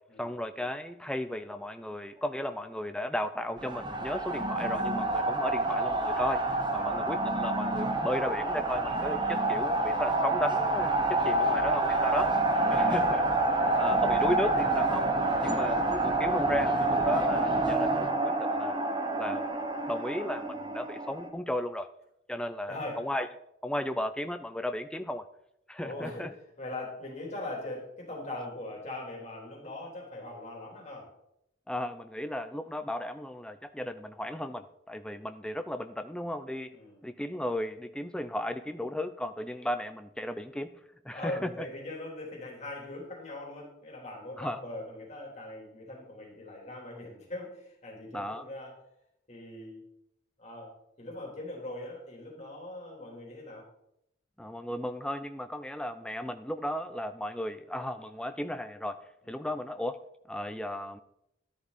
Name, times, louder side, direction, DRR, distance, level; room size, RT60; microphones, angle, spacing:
voice 1, 0.2-6.4 6.7-12.3 12.7-13.2 13.7-15.1 15.4-18.7 19.2-19.5 19.9-21.9 22.3-23.3 23.6-25.3 25.7-26.3 31.7-36.7 37.0-40.8 41.0-41.7 44.4-44.6 48.1-48.5 54.4-59.0 59.3-60.0 60.3-61.0, left 1 dB, 5° left, 9 dB, 0.4 m, -35 dB
sound 1, 3.6-21.3, right 2 dB, 20° right, 1.2 m, -28 dB
voice 2, 6.8-7.1 12.4-14.2 15.4-15.9 22.7-23.0 25.8-31.1 36.7-37.0 41.1-48.7 49.3-49.8 50.4-50.7 51.0-53.7 59.2-59.5, left 2 dB, 35° left, -2 dB, 3.6 m, -41 dB
13.5 x 10.0 x 4.2 m, 0.78 s
head